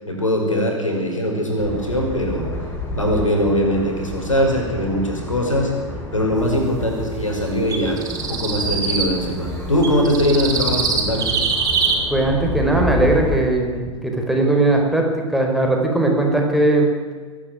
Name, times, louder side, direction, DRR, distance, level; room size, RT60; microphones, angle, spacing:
voice 1, 0.1-2.5 2.9-5.7 6.1-11.3, equal, 85° left, 1 dB, 6.0 m, -21 dB
sound 1, 1.6-13.4, left 2 dB, 15° left, 7.1 m, -30 dB
sound 2, 7.7-9.1 9.8-11.9, right 5 dB, 25° right, 5.2 m, -22 dB
voice 2, 12.1-16.9, right 2 dB, ahead, 0 dB, 4.8 m, -19 dB
25.0 x 11.5 x 9.5 m, 1.5 s
figure-of-eight pair, 90°, 16 cm